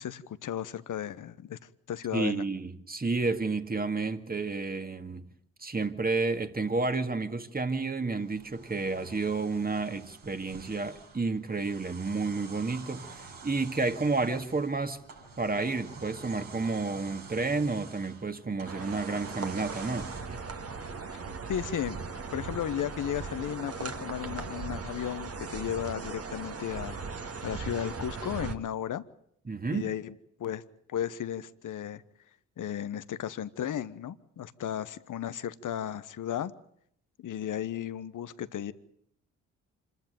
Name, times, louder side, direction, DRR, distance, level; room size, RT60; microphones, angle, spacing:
voice 1, 0.0-1.6 1.9-2.4 21.5-22.0 22.3-27.0 27.4-29.0 29.7-30.1 30.4-30.6 30.9-32.0 32.6-36.5 37.2-38.7, left 10 dB, 65° left, 1.1 m, -34 dB
voice 2, 2.1-5.3 5.6-15.0 15.4-20.1 29.5-29.9, right 3 dB, 25° right, 2.1 m, -31 dB
sound 1, 8.2-20.2, right 4 dB, 75° right, 5.8 m, -48 dB
sound 2, 18.6-28.6, right 4 dB, 45° right, 2.0 m, -38 dB
26.5 x 13.5 x 9.1 m
supercardioid pair, 45°, 34 cm